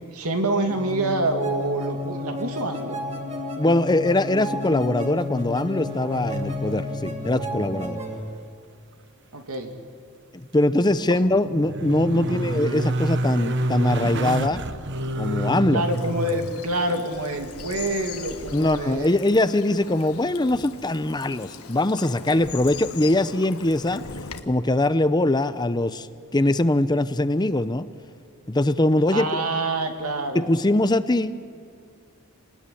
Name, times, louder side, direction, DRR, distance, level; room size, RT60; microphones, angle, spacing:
voice 1, 0.1-3.0 9.3-9.7 11.1-11.2 12.1-12.4 15.7-19.2 29.1-30.5, right 2 dB, 85° right, 5 dB, 2.6 m, -27 dB
sound 1, 0.7-8.2, left 1 dB, 30° right, 3.0 m, -32 dB
voice 2, 3.6-8.0 10.3-14.6 15.2-15.8 18.5-24.0 24.5-26.1 26.3-27.9 28.5-29.4 30.3-31.4, left 1 dB, 20° left, 13 dB, 0.6 m, -22 dB
sound 2, 5.8-6.8 7.0-7.9 8.1-8.2 10.7-16.6 19.4-19.5, right 1 dB, 55° right, 1.1 m, -28 dB
Bird vocalization bird call bird song / Stream, 15.8-24.4, left 5 dB, 75° left, 1.5 m, -40 dB
27.5 x 19.5 x 10.0 m, 2.2 s
head